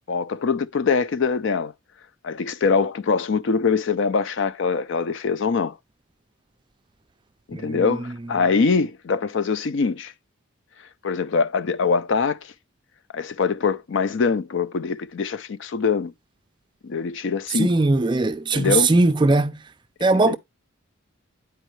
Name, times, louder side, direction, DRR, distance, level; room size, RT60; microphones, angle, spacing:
voice 1, 0.1-1.7 2.2-5.8 7.5-10.1 11.0-12.4 13.1-16.1 16.8-17.7 18.5-18.9 20.2-20.4, left 5 dB, 60° left, 0.4 m, -23 dB
voice 2, 7.5-8.0 17.5-19.6 20.0-20.4, right 2 dB, 20° right, 0.4 m, -20 dB
9.0 x 4.6 x 3.1 m
head